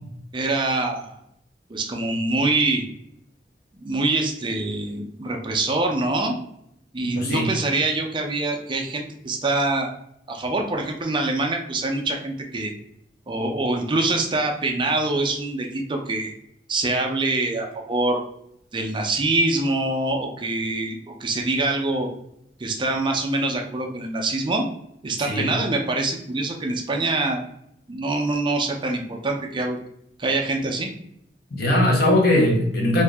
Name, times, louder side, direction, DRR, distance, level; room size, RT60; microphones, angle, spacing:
voice 1, 0.3-1.2 1.7-2.8 3.8-6.4 6.9-9.9 10.3-12.7 13.3-16.3 16.7-18.2 18.7-22.1 22.6-24.7 25.0-27.4 27.9-29.8 30.2-30.9, right 2 dB, 30° right, 2 dB, 0.4 m, -24 dB
voice 2, 7.0-7.5 25.2-25.5 31.5-33.0, left 1 dB, 60° left, -2 dB, 1.0 m, -20 dB
2.7 x 2.5 x 3.4 m, 0.74 s
head